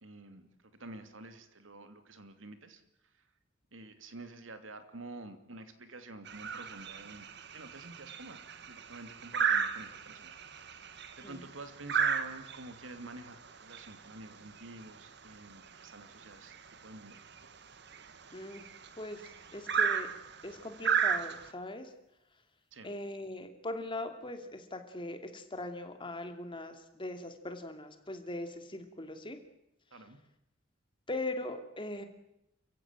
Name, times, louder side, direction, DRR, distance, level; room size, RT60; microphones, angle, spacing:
voice 1, 0.0-3.3 3.7-10.9 11.2-16.5 16.8-17.2 22.7-22.9 29.9-30.2, right 2 dB, 85° right, 9 dB, 2.7 m, -49 dB
sound 1, 6.3-21.5, right 7 dB, 60° right, 1.7 m, -35 dB
voice 2, 18.3-18.6 19.0-20.1 20.4-21.9 22.8-29.4 31.1-32.0, left 2 dB, 25° left, 6 dB, 2.8 m, -40 dB
28.5 x 15.5 x 9.0 m, 0.83 s
head